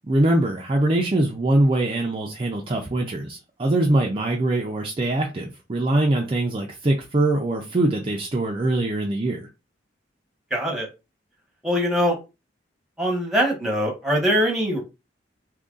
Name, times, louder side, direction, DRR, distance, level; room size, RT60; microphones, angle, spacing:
voice 1, 0.0-9.5, right 1 dB, 30° right, 0.5 m, -23 dB
voice 2, 10.5-10.9 11.6-12.1 13.0-14.8, equal, 5° right, 1.1 m, -22 dB
2.8 x 2.6 x 3.7 m
head